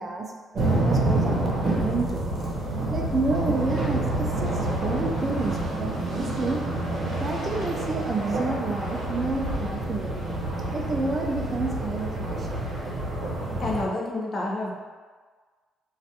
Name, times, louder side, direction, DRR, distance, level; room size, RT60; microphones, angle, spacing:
voice 1, 0.0-2.4 2.9-6.6 7.2-10.1 10.7-12.6, right 3 dB, 35° right, 1 dB, 0.3 m, -30 dB
sound 1, 0.5-13.8, right 1 dB, 70° right, 0.7 m, -28 dB
voice 2, 13.6-14.7, left 2 dB, 45° left, -2 dB, 0.5 m, -29 dB
2.3 x 2.1 x 2.7 m, 1.5 s
cardioid pair, 90°, 0 cm